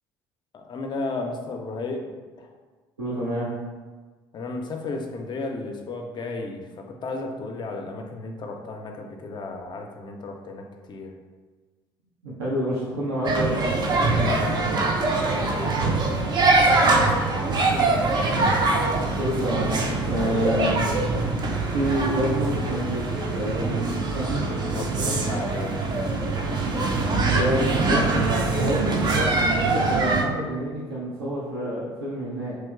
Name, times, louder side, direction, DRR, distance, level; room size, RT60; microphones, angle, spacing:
voice 1, 0.5-2.1 2.4-2.5 4.3-11.1 14.1-16.6 20.2-20.7 24.7-26.1 28.7-28.9, left 3 dB, 35° left, 3 dB, 0.5 m, -34 dB
voice 2, 3.0-3.5 12.2-13.7 17.3-17.4 17.7-18.2 18.7-18.8 19.2-20.8 21.7-23.0 23.3-24.4 24.9-25.2 27.2-28.1 28.5-32.5, right 1 dB, 85° right, -8 dB, 0.5 m, -28 dB
sound 1, 13.2-30.2, right 3 dB, 35° right, 0.4 m, -23 dB
3.2 x 2.8 x 2.3 m, 1.4 s
figure-of-eight pair, 55°, 13 cm